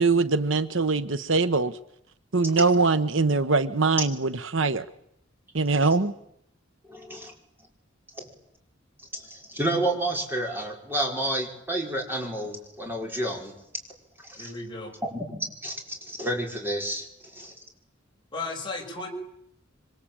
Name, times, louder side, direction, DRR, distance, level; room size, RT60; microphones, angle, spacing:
voice 1, 0.0-1.7 2.3-4.9 5.5-6.1, right 3 dB, 70° right, 13 dB, 1.2 m, -22 dB
voice 2, 6.9-7.3 8.2-8.3 9.1-13.6 14.2-14.5 15.0-17.1 17.3-17.5, right 1 dB, 10° right, 1 dB, 5.4 m, -30 dB
voice 3, 14.4-14.9 18.3-19.1, left 3 dB, 25° left, 0 dB, 6.4 m, -34 dB
26.0 x 25.0 x 9.0 m, 0.75 s
head